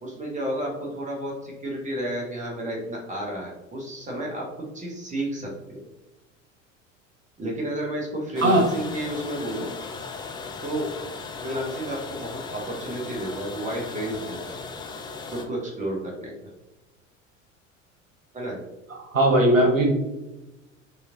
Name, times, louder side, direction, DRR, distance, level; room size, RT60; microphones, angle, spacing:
voice 1, 0.0-5.8 7.4-9.7 10.6-10.9 11.4-14.6 15.3-16.5 18.3-18.6 19.6-19.7, right 1 dB, 20° right, -2 dB, 1.4 m, -31 dB
sound 1, 8.4-15.4, left 4 dB, 10° left, 0.4 m, -37 dB
voice 2, 8.4-8.7 18.9-19.9, right 1 dB, 85° right, 1 dB, 1.0 m, -19 dB
6.3 x 3.2 x 2.5 m, 1.0 s
figure-of-eight pair, 70°, 38 cm